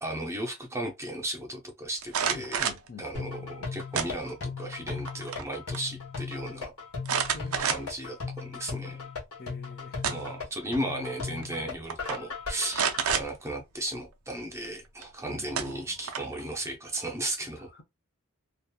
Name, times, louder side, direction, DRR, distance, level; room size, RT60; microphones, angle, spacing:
voice 1, 0.0-2.7 3.0-6.7 7.6-9.1 10.1-17.7, right 1 dB, 15° right, 0.5 m, -35 dB
sound 1, 2.0-2.9 3.9-4.6 5.0-5.5 5.7-5.8 7.1-8.1 8.6-8.7 9.7-10.4 11.4-11.6 11.9-12.2 12.7-13.3 15.0-15.1 15.6-16.4, right 7 dB, 70° right, 0.5 m, -29 dB
voice 2, 2.3-3.7 7.3-7.9 9.4-10.0 15.3-16.0, left 3 dB, 45° left, 0.6 m, -47 dB
sound 2, 3.1-13.1, left 4 dB, 80° left, 1.1 m, -37 dB
2.8 x 2.4 x 2.2 m
head